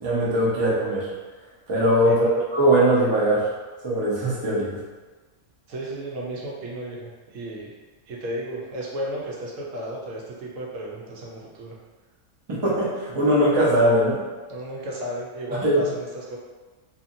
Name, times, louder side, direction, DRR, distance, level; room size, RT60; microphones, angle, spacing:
voice 1, 0.0-1.1 1.7-2.2 2.5-3.4 3.8-4.8 12.5-14.2 15.6-15.9, right 1 dB, 30° right, -6 dB, 0.5 m, -20 dB
voice 2, 2.1-2.4 5.7-7.7 8.1-11.7 14.5-16.4, right 1 dB, 90° right, -3 dB, 1.0 m, -33 dB
2.8 x 2.4 x 2.6 m, 1.3 s
omnidirectional pair, 1.3 m